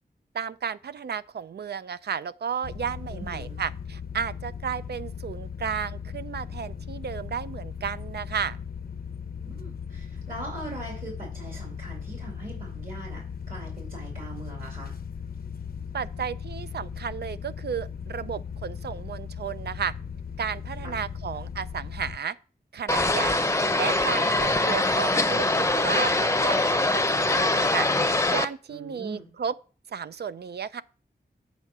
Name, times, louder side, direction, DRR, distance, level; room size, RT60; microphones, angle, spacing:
voice 1, 0.3-8.6 15.9-19.9 20.4-22.4 22.7-23.4 23.8-27.9 28.3-29.5 29.9-30.8, right 7 dB, 75° right, 0.4 m, -33 dB
sound 1, 2.6-22.2, left 6 dB, 60° left, 0.6 m, -38 dB
voice 2, 3.1-3.6 9.4-14.9 20.8-21.0 28.7-29.3, right 2 dB, 55° right, 2.7 m, -41 dB
sound 2, 22.9-28.5, left 2 dB, 15° left, 0.6 m, -23 dB
8.1 x 4.6 x 6.0 m
wide cardioid pair, 75°, 17 cm